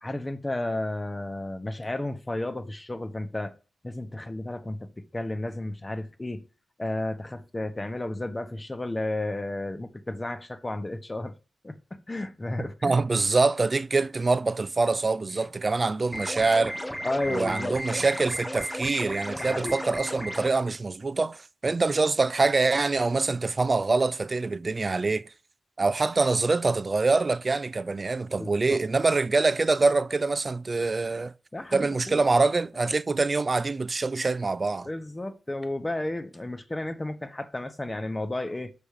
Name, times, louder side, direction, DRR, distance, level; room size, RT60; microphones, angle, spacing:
voice 1, 0.0-3.6 3.8-6.4 6.8-11.3 11.6-13.0 15.3-15.4 17.0-17.8 19.4-19.8 28.4-28.8 31.5-32.2 32.7-32.9 34.8-38.7, left 1 dB, 20° left, 0.9 m, -33 dB
voice 2, 12.8-16.8 17.3-25.3 25.8-31.3 31.7-34.9, right 3 dB, 40° right, 0.4 m, -25 dB
sound 1, 16.1-20.5, equal, 5° left, 0.6 m, -34 dB
6.9 x 5.1 x 4.7 m
cardioid pair, 80°, 0 cm